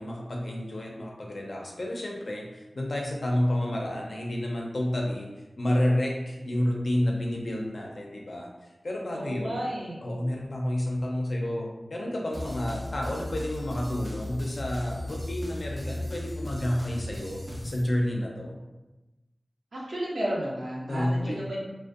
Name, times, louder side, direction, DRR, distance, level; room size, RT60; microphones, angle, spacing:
voice 1, 0.0-5.3 5.6-9.6 10.0-18.6 20.9-21.5, left 1 dB, 65° left, -1 dB, 0.5 m, -30 dB
voice 2, 9.1-10.0 19.7-21.6, right 1 dB, 75° right, -5 dB, 0.7 m, -32 dB
sound 1, 12.3-17.8, left 1 dB, 10° left, 0.4 m, -36 dB
2.6 x 2.1 x 2.4 m, 1.1 s
wide cardioid pair, 70°, 0 cm